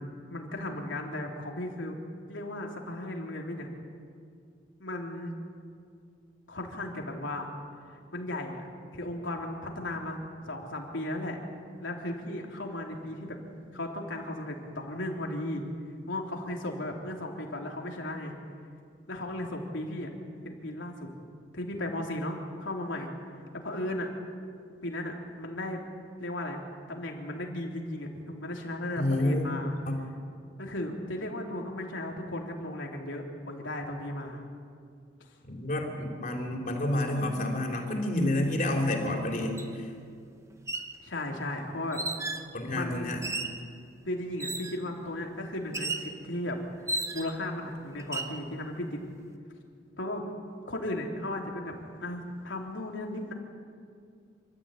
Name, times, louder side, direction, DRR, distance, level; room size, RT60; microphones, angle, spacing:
voice 1, 0.0-2.0 2.3-3.7 4.8-5.3 6.5-7.5 7.9-8.6 8.9-10.2 10.5-11.4 11.8-13.4 13.7-15.6 16.1-18.3 19.1-20.1 20.4-21.1 21.5-23.1 23.6-24.1 24.8-25.8 26.2-26.6 26.9-29.7 30.6-34.4 41.0-42.0 42.7-43.2 44.1-46.6 46.9-49.0 50.0-50.2 50.7-51.7 52.0-53.3, left 1 dB, 85° left, 1 dB, 3.5 m, -35 dB
voice 2, 29.0-29.4 29.9-30.0 35.5-39.6 42.5-43.2, left 1 dB, 45° left, 1 dB, 3.7 m, -29 dB
sound 1, 39.6-39.7 40.5-40.9 41.9-42.5 43.2-43.6 44.4-44.8 45.7-46.1 46.9-47.4 48.0-48.4, right 2 dB, 15° right, 1.1 m, -34 dB
28.0 x 13.5 x 9.1 m, 2.3 s
head